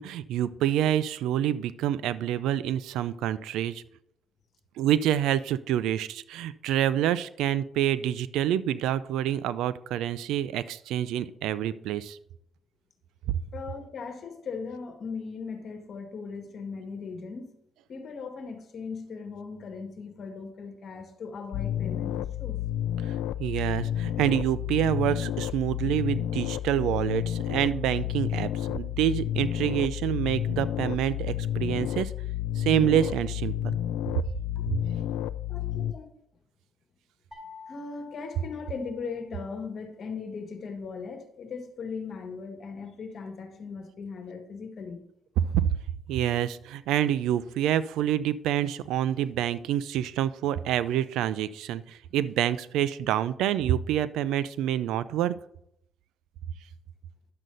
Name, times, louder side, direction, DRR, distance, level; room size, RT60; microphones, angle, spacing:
voice 1, 0.0-3.8 4.8-12.2 23.1-23.2 23.4-32.1 32.6-33.8 45.5-45.7 46.1-55.3, right 11 dB, 90° right, 16 dB, 0.5 m, -27 dB
voice 2, 13.5-17.6 17.9-22.6 34.6-34.7 35.5-36.1 37.7-45.1, left 5 dB, 55° left, 5 dB, 1.7 m, -38 dB
sound 1, 21.5-35.9, left 11 dB, 90° left, 0.3 m, -31 dB
sound 2, 37.3-39.5, left 5 dB, 5° right, 4.5 m, -49 dB
11.0 x 7.7 x 4.0 m, 0.75 s
cardioid pair, 90°, 0 cm